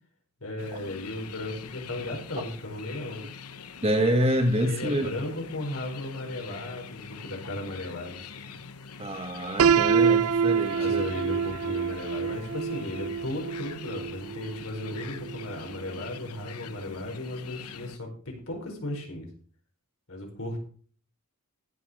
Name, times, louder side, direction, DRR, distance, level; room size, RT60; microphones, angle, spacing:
voice 1, 0.4-3.2 4.6-8.5 10.7-19.3 20.1-20.6, left 1 dB, 70° left, 4.9 m, -36 dB
sound 1, 0.6-18.0, left 6 dB, 90° left, 1.0 m, -44 dB
voice 2, 3.8-5.1 9.0-11.1, equal, 25° right, 1.5 m, -26 dB
Piano, 9.6-15.5, right 6 dB, 70° right, 0.4 m, -26 dB
15.5 x 6.9 x 5.3 m
head